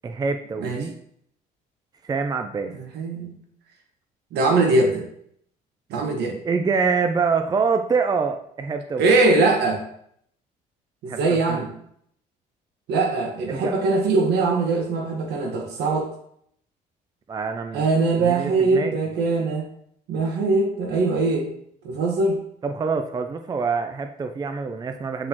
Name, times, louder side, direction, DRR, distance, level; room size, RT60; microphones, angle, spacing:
voice 1, 0.0-0.9 2.0-2.7 6.4-9.0 11.1-11.6 13.5-13.7 17.3-17.9 18.2-18.9 22.6-25.3, right 5 dB, 25° right, 7 dB, 0.5 m, -25 dB
voice 2, 0.6-0.9 2.7-3.4 4.3-5.0 5.9-6.4 9.0-9.8 11.0-11.7 12.9-16.1 17.7-19.7 20.1-21.5 21.8-22.4, right 3 dB, 80° right, 2 dB, 1.4 m, -21 dB
7.8 x 4.2 x 2.9 m, 0.68 s
cardioid pair, 110°, 17 cm